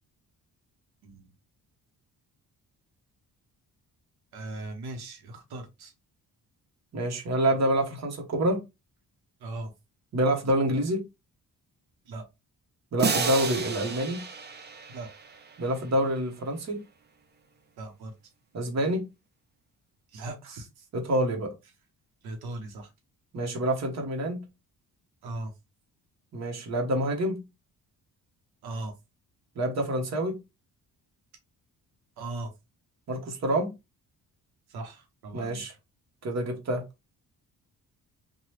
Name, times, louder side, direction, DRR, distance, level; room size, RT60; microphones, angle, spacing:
voice 1, 4.3-5.9 9.4-9.7 12.1-12.2 14.9-15.1 17.8-18.1 20.1-20.9 22.2-22.9 25.2-25.5 28.6-28.9 32.2-32.5 34.7-35.6, right 2 dB, 85° right, 3 dB, 0.8 m, -38 dB
voice 2, 6.9-8.6 10.1-11.0 12.9-14.2 15.6-16.8 18.5-19.1 20.9-21.5 23.3-24.4 26.3-27.4 29.6-30.4 33.1-33.7 35.3-35.7 36.2-36.8, right 1 dB, 45° right, 2 dB, 1.0 m, -27 dB
sound 1, 13.0-15.8, right 5 dB, 30° right, 0.5 m, -31 dB
2.9 x 2.3 x 3.1 m, 0.24 s
cardioid pair, 110°, 37 cm